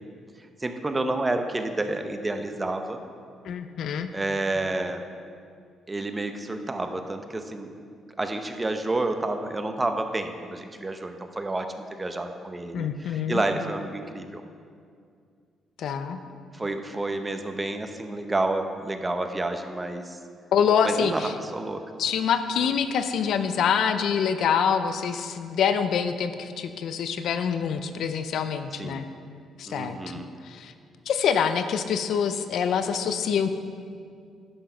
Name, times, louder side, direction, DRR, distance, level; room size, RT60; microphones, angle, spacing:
voice 1, 0.6-3.0 4.1-5.0 5.9-7.7 8.2-11.7 11.9-14.4 16.5-20.2 20.8-21.2 21.5-21.8 28.8-29.0 29.7-30.3, right 2 dB, 20° right, 6 dB, 0.8 m, -29 dB
voice 2, 3.5-4.1 12.7-13.4 15.8-16.2 20.5-21.3 22.0-29.0 29.6-30.7 31.1-33.5, left 7 dB, 70° left, 9 dB, 0.6 m, -25 dB
10.5 x 6.2 x 5.7 m, 2.2 s
cardioid pair, 90°, 0 cm